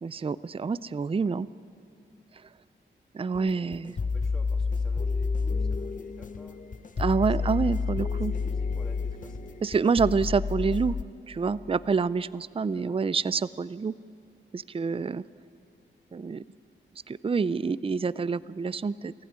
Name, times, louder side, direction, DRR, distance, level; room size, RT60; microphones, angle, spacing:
voice 1, 0.0-1.5 3.1-3.9 7.0-8.3 9.6-11.0 11.3-13.9 14.5-15.2 16.1-16.4 17.1-19.1, right 5 dB, 30° right, 18 dB, 0.5 m, -27 dB
sound 1, 3.3-11.0, left 4 dB, 40° left, 0.9 m, -30 dB
voice 2, 3.8-6.6 7.3-7.8 8.1-9.6 12.7-13.1, equal, 5° left, 1 dB, 2.8 m, -51 dB
25.5 x 15.0 x 9.6 m, 2.5 s
cardioid pair, 70°, 20 cm